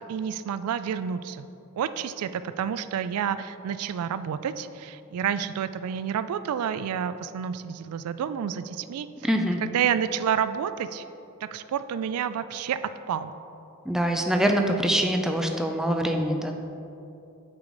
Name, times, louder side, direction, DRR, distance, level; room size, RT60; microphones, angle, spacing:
voice 1, 0.0-1.5 1.8-9.1 9.6-11.0 11.4-13.3, right 8 dB, 80° right, 13 dB, 0.3 m, -29 dB
voice 2, 9.2-9.6 13.8-16.5, equal, ahead, 3 dB, 0.4 m, -24 dB
8.5 x 4.8 x 3.9 m, 2.7 s
head